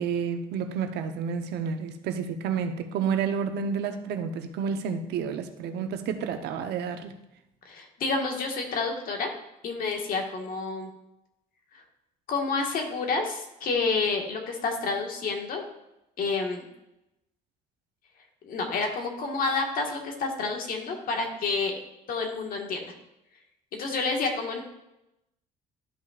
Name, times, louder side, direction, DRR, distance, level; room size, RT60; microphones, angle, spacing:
voice 1, 0.0-7.1, right 6 dB, 80° right, 0.8 m, -30 dB
voice 2, 7.6-9.3 9.6-10.9 11.7-11.8 12.3-15.6 16.2-16.7 18.4-21.8 22.1-22.9 23.7-24.6, left 4 dB, 55° left, 1.6 m, -29 dB
12.5 x 5.4 x 2.4 m
cardioid pair, 110°, 17 cm